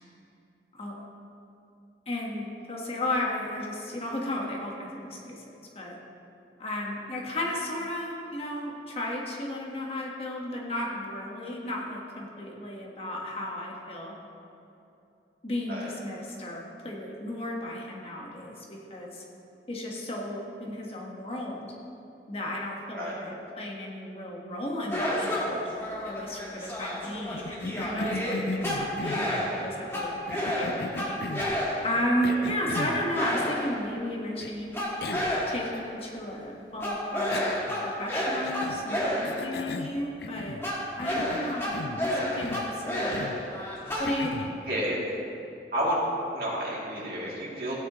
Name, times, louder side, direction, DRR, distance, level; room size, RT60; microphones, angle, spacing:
voice 1, 2.1-5.4 5.7-6.0 6.6-14.1 15.4-19.2 19.7-21.6 22.3-25.6 26.0-34.7 35.5-37.5 37.8-40.6 41.0-43.2 44.0-44.6, left 1 dB, 35° left, -2 dB, 1.4 m, -34 dB
sound 1, 24.9-32.1 32.7-33.9 34.7-35.8 36.8-39.6 40.6-44.1, equal, 15° left, 1.7 m, -31 dB
Cough, 27.3-29.5 30.3-31.6 32.2-33.0 34.4-34.5 35.0-35.4 35.7-35.8 37.3-37.9 38.4-38.8 39.2-40.7 41.0-42.1 42.4-42.7 43.1-43.4 44.0-44.5, left 3 dB, 65° left, 0.5 m, -37 dB
voice 2, 46.3-47.7, equal, 55° right, -6 dB, 2.7 m, -31 dB
16.0 x 9.3 x 3.1 m, 2.8 s
head